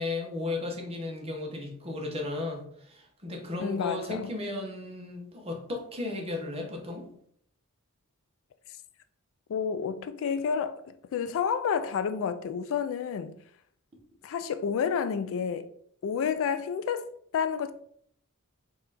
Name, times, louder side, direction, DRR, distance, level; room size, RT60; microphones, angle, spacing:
voice 1, 0.0-7.1, left 2 dB, 25° right, 0.9 m, -35 dB
voice 2, 3.6-4.3 9.5-13.3 14.2-15.7 16.0-17.7, left 6 dB, 65° left, 0.3 m, -30 dB
4.3 x 2.5 x 4.0 m
head